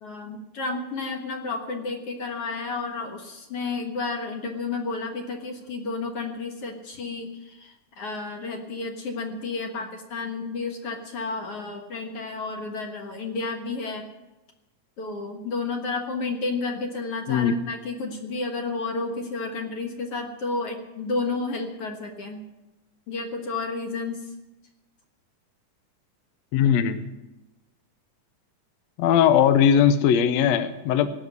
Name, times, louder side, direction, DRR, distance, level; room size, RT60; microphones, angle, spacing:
voice 1, 0.0-14.1 15.0-22.4 23.1-24.3, left 3 dB, 55° left, 3 dB, 2.2 m, -31 dB
voice 2, 17.3-17.6 26.5-27.0 29.0-31.1, left 8 dB, 70° left, 11 dB, 1.9 m, -19 dB
17.5 x 6.6 x 9.6 m, 1.0 s
omnidirectional pair, 3.6 m